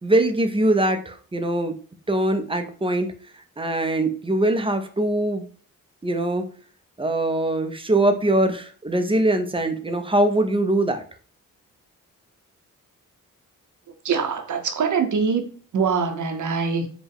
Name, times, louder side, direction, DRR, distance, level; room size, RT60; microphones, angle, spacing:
voice 1, 0.0-1.7 2.1-3.1 3.6-5.5 6.0-6.4 7.0-11.0, right 1 dB, 15° right, 0.6 m, -22 dB
voice 2, 14.0-15.5 15.7-16.9, right 5 dB, 60° right, 0.8 m, -23 dB
4.3 x 2.3 x 3.5 m
cardioid pair, 65°, 33 cm